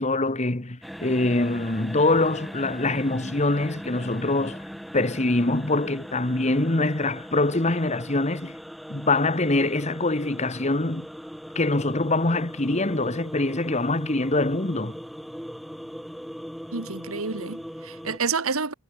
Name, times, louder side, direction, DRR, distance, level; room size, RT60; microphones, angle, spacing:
voice 1, 0.0-4.6 4.9-8.6 8.9-11.1 11.5-15.0, left 2 dB, 30° left, 1.5 m, -24 dB
sound 1, 0.8-18.2, equal, ahead, 1.7 m, -39 dB
voice 2, 16.7-18.7, right 5 dB, 75° right, 1.7 m, -29 dB
head